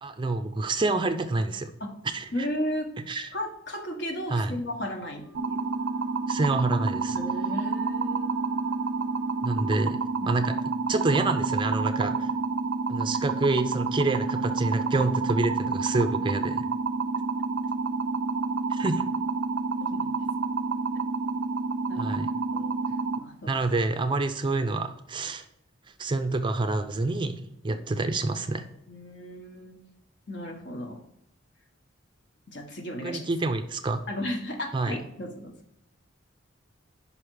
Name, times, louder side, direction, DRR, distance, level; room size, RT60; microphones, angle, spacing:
voice 1, 0.0-1.7 2.1-2.5 3.1-3.3 4.3-4.6 6.3-7.2 9.4-10.0 10.3-10.6 10.9-12.3 12.9-16.7 18.7-19.0 22.0-22.3 23.5-25.4 26.0-28.7 33.0-34.0 34.7-34.9, right 2 dB, 25° right, 9 dB, 0.4 m, -27 dB
voice 2, 2.3-2.9 3.3-5.6 7.1-8.3 10.2-10.4 19.8-20.1 21.9-22.2 22.5-22.7 23.2-23.5 27.7-27.8 28.9-29.8 30.3-31.0 32.5-33.2 34.1-35.5, equal, 60° left, 3 dB, 1.2 m, -34 dB
Wind instrument woodwind instrument, 5.1-10.0, equal, 75° left, 1.7 m, -56 dB
sound 1, 5.3-23.2, right 4 dB, 85° right, 0.4 m, -29 dB
5.5 x 5.0 x 4.6 m, 0.79 s
head